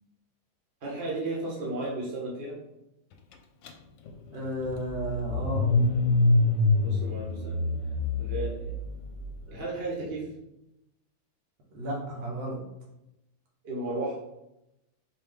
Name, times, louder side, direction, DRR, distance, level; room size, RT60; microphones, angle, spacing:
voice 1, 0.8-2.5 6.8-7.6 8.2-8.7 9.5-10.2 13.6-14.2, right 2 dB, 35° right, -4 dB, 1.1 m, -34 dB
Car / Engine starting, 3.7-3.8 4.1-9.3, left 2 dB, 75° left, 1.2 m, -26 dB
voice 2, 4.3-5.7 11.7-12.6, right 1 dB, 80° right, -3 dB, 1.8 m, -33 dB
4.8 x 2.7 x 3.5 m, 0.89 s
omnidirectional pair, 2.2 m